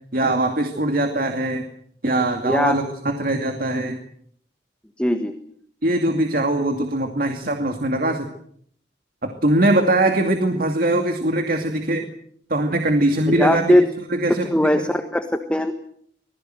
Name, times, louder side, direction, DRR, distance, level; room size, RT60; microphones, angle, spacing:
voice 1, 0.1-1.6 2.0-4.0 5.8-8.3 9.2-12.0 12.5-13.8 14.1-14.9, right 1 dB, 55° right, 5 dB, 2.4 m, -21 dB
voice 2, 2.4-2.8 5.0-5.4 13.3-13.9 14.5-15.7, left 1 dB, 5° left, 7 dB, 1.4 m, -19 dB
26.0 x 20.5 x 7.8 m, 0.64 s
head